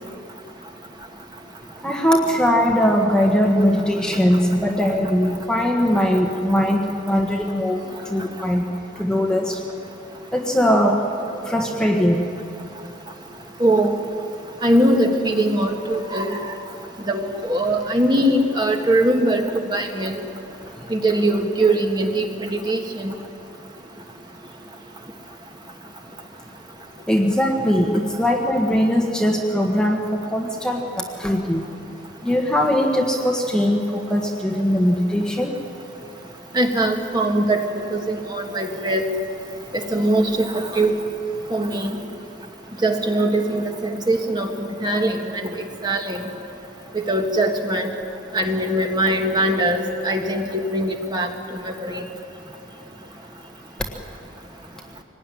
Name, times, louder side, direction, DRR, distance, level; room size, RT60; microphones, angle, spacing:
voice 1, 1.8-7.8 8.1-8.6 9.0-9.6 10.3-11.0 11.5-12.2 27.1-30.0 30.3-31.6 32.2-35.5, equal, 5° left, 0 dB, 1.4 m, -20 dB
voice 2, 13.6-13.9 14.6-16.5 17.1-19.4 19.7-20.1 20.9-23.1 36.5-39.0 39.7-41.0 41.5-42.0 42.8-45.5 45.8-46.3 46.9-47.9 48.3-52.0, right 1 dB, 20° right, 3 dB, 1.8 m, -21 dB
25.0 x 19.0 x 9.9 m, 3.0 s
head